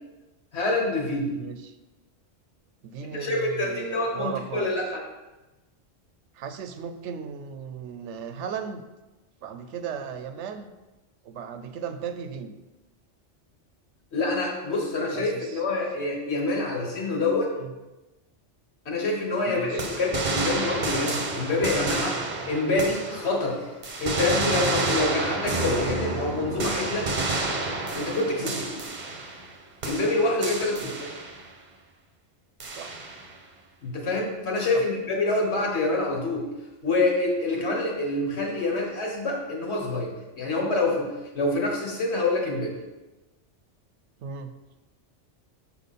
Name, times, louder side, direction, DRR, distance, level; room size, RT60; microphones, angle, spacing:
voice 1, 0.5-1.3 3.1-5.0 14.1-17.5 18.8-22.2 22.5-23.7 24.0-27.1 27.9-28.8 29.8-31.1 33.8-36.5 36.8-41.1 41.3-42.8, left 2 dB, 65° left, -1 dB, 1.6 m, -26 dB
voice 2, 1.3-1.8 2.8-4.7 6.3-8.8 9.4-10.7 11.2-12.6 15.1-15.6 17.5-17.7 19.5-19.9 28.4-28.6 30.7-31.0 32.7-33.0 34.7-34.9 44.2-44.5, right 7 dB, 75° right, 9 dB, 0.9 m, -36 dB
sound 1, 19.8-23.5 23.8-29.5 29.8-31.5 32.6-33.3, right 2 dB, 45° right, 0.8 m, -30 dB
6.8 x 4.5 x 4.1 m, 1.1 s
omnidirectional pair, 1.2 m